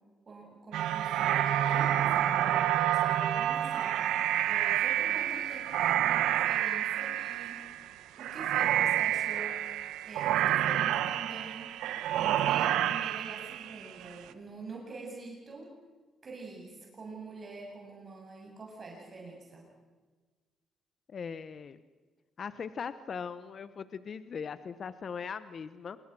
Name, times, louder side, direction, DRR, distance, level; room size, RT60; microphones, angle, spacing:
voice 1, 0.3-4.0 4.4-7.7 8.2-9.6 10.1-11.8 12.1-15.7 16.2-19.6, right 3 dB, 40° right, -1 dB, 7.7 m, -46 dB
sound 1, 0.7-14.1, right 11 dB, 90° right, 1.2 m, -29 dB
voice 2, 21.1-21.8 22.4-26.0, left 6 dB, 50° left, 13 dB, 1.0 m, -39 dB
28.0 x 21.5 x 6.2 m, 1.3 s
cardioid pair, 90°, 0 cm